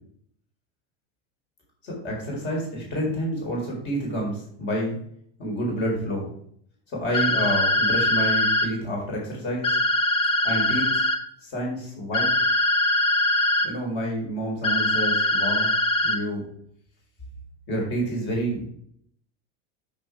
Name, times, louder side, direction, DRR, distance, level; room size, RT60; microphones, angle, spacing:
voice 1, 1.8-5.0 5.4-6.3 7.0-9.7 10.4-10.9 11.4-12.3 13.6-15.7 16.0-16.4 17.7-18.6, equal, 35° left, -2 dB, 4.4 m, -28 dB
sound 1, 7.1-8.7 9.6-11.2 12.1-13.7 14.6-16.2, left 1 dB, 15° left, 0.6 m, -22 dB
8.5 x 6.7 x 4.8 m, 0.65 s
supercardioid pair, 165°, 33 cm